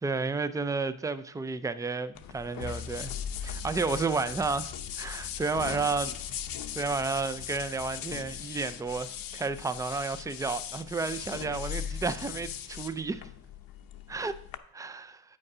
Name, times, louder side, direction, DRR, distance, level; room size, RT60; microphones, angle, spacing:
voice 1, 0.0-3.1 3.4-6.2 6.7-13.2 14.1-14.4 14.7-15.2, right 4 dB, 10° right, 0.3 m, -32 dB
sound 1, 2.1-14.6, left 9 dB, 60° left, 0.7 m, -39 dB
8.3 x 5.3 x 4.8 m
cardioid pair, 85°, 40 cm